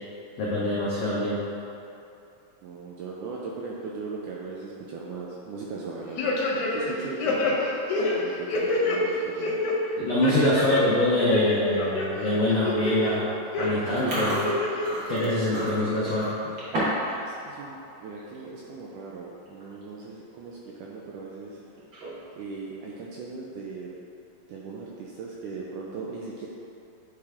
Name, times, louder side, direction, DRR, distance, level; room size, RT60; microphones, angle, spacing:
voice 1, 0.4-1.4 9.9-13.3 13.6-14.5 15.1-16.3, left 1 dB, 85° left, -8 dB, 1.4 m, -24 dB
voice 2, 2.6-6.4 6.7-7.6 8.2-9.6 15.2-15.7 17.2-21.6 22.4-23.9 24.5-26.5, right 4 dB, 80° right, -4 dB, 1.8 m, -38 dB
sound 1, 6.2-6.9 7.2-9.0 9.4-9.7 10.2-10.8 11.2-12.0 12.5-13.1 13.5-13.7 14.3-14.9 15.2-15.3, left 2 dB, 70° left, 1.9 m, -26 dB
Chewing mastication, 13.9-17.1 17.4-17.7 18.2-18.4 19.1-19.2 19.5-19.8 20.2-20.3 21.8-22.3, right 1 dB, 50° right, 1.5 m, -32 dB
9.6 x 3.3 x 3.5 m, 2.8 s
omnidirectional pair, 4.1 m